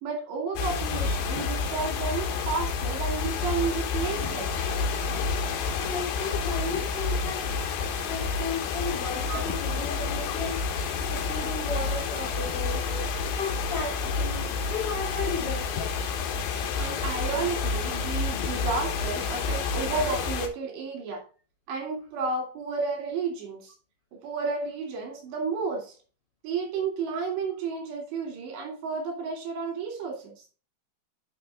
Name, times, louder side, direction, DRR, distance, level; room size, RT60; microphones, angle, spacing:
voice 1, 0.0-4.5 9.3-9.4 10.0-10.1 12.8-13.0 16.8-21.2 21.7-23.7 24.2-25.9 26.4-30.4, right 4 dB, 75° right, 1 dB, 4.7 m, -32 dB
sound 1, 0.6-20.5, left 5 dB, 65° left, 2.5 m, -29 dB
voice 2, 5.7-7.5 8.0-10.6 11.1-12.8 13.4-16.0, left 4 dB, 40° left, 0 dB, 2.4 m, -34 dB
10.0 x 5.8 x 3.5 m, 0.37 s
omnidirectional pair, 5.1 m